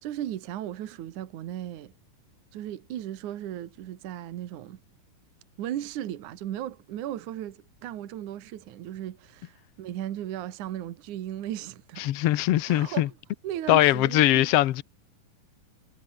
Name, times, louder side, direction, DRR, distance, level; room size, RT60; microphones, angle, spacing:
voice 1, 0.0-1.9 2.5-4.8 5.6-12.4 12.7-13.2 13.4-14.5, right 12 dB, 70° right, 2.8 m, -36 dB
voice 2, 12.0-13.1 13.7-14.8, left 15 dB, 70° left, 1.4 m, -21 dB
omnidirectional pair, 3.8 m